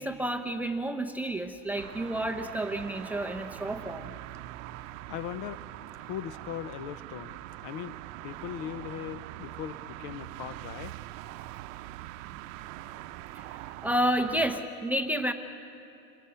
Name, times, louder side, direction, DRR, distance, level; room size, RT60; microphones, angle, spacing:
voice 1, 0.0-4.1 13.3-15.3, right 1 dB, 5° right, 7 dB, 0.7 m, -30 dB
sound 1, 1.7-14.6, right 15 dB, 60° right, 0.8 m, -43 dB
voice 2, 5.1-5.6 6.0-10.9, left 10 dB, 45° left, 14 dB, 0.9 m, -39 dB
28.0 x 22.0 x 5.7 m, 2.7 s
supercardioid pair, 140°, 43 cm